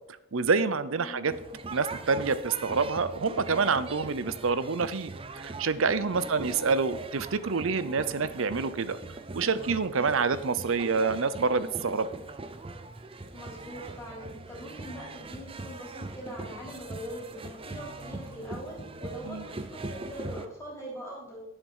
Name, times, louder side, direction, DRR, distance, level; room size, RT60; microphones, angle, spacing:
voice 1, 0.3-1.3 1.7-9.0 9.3-12.1 19.2-19.5, right 4 dB, 65° right, 14 dB, 0.6 m, -27 dB
voice 2, 1.0-1.4 6.2-6.6 13.3-21.4, equal, 15° left, -5 dB, 3.5 m, -42 dB
sound 1, 1.3-20.5, right 2 dB, 25° right, 0.5 m, -41 dB
10.5 x 7.3 x 5.5 m, 0.91 s
head